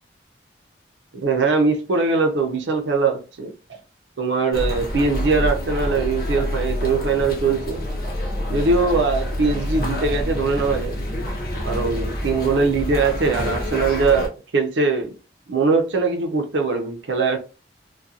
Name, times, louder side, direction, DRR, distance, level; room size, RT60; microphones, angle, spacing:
voice 1, 1.1-3.5 4.2-7.8 8.5-10.9 11.6-15.1 15.5-17.4, right 4 dB, 80° right, 0.5 m, -21 dB
sound 1, 4.5-14.3, equal, 55° left, 0.7 m, -27 dB
2.4 x 2.2 x 2.7 m
head